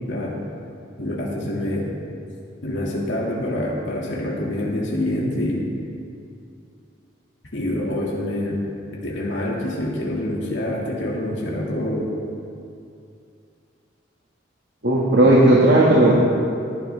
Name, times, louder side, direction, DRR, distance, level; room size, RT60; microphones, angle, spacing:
voice 1, 1.0-1.9 2.6-5.6 7.5-8.6 9.0-12.1, left 1 dB, 85° left, -4 dB, 2.1 m, -26 dB
voice 2, 14.8-16.2, right 1 dB, 65° right, -5 dB, 1.8 m, -14 dB
18.0 x 11.0 x 3.4 m, 2.5 s
head